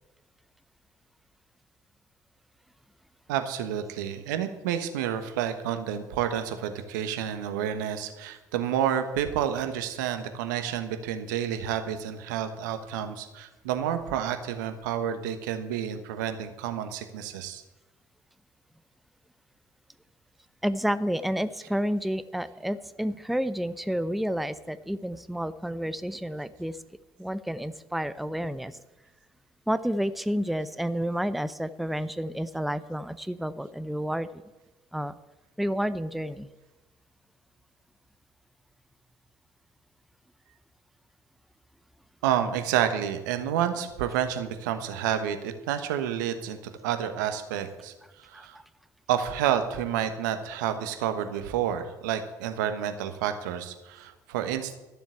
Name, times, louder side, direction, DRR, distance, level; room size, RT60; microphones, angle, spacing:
voice 1, 3.3-17.6 42.2-48.6 49.1-54.8, right 9 dB, 80° right, 8 dB, 1.3 m, -29 dB
voice 2, 20.6-26.8 27.2-28.8 29.7-34.4 34.9-35.1 35.6-36.5 48.3-48.6, equal, ahead, 14 dB, 0.6 m, -30 dB
12.5 x 7.3 x 8.4 m, 1.1 s
hypercardioid pair, 60°, 10 cm